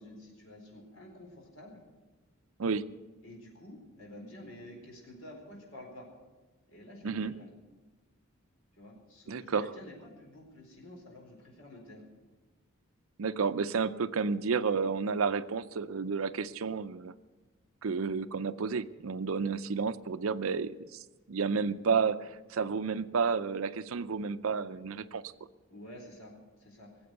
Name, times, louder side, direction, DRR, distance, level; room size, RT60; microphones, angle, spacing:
voice 1, 0.0-1.8 3.2-6.1 6.7-7.5 8.8-12.0 25.7-26.3 26.6-26.9, left 1 dB, 70° left, 0 dB, 4.4 m, -49 dB
voice 2, 2.6-2.9 7.0-7.3 9.3-9.7 13.2-17.1 17.8-21.0 21.3-25.2, right 5 dB, 75° right, 14 dB, 0.6 m, -31 dB
19.0 x 7.9 x 7.8 m, 1.2 s
head